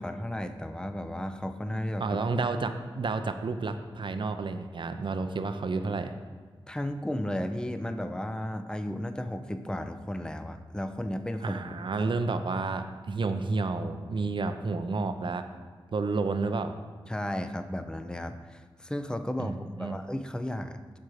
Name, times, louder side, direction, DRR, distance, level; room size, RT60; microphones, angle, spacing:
voice 1, 0.0-2.2 6.7-11.7 17.1-21.0, left 1 dB, 10° left, 8 dB, 0.6 m, -34 dB
voice 2, 2.0-6.2 11.4-15.4 15.9-16.7 19.4-20.0, right 3 dB, 60° right, 8 dB, 0.6 m, -30 dB
7.4 x 4.6 x 6.4 m, 1.5 s
cardioid pair, 45°, 9 cm